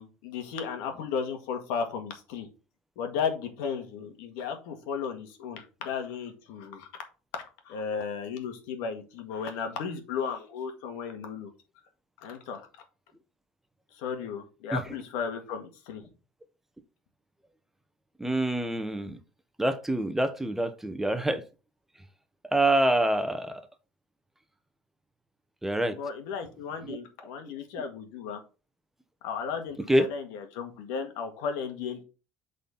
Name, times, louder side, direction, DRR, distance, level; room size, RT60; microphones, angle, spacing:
voice 1, 0.0-2.5 2.9-6.9 7.3-11.5 12.2-12.7 13.9-16.1 25.9-28.4 29.2-32.0, left 6 dB, 75° left, 6 dB, 1.7 m, -35 dB
voice 2, 18.2-19.2 19.6-21.4 22.5-23.6 25.6-26.0 26.9-27.0 29.9-30.1, right 1 dB, 5° right, 10 dB, 1.0 m, -26 dB
8.0 x 4.2 x 4.2 m, 0.33 s
supercardioid pair, 95°, 6 cm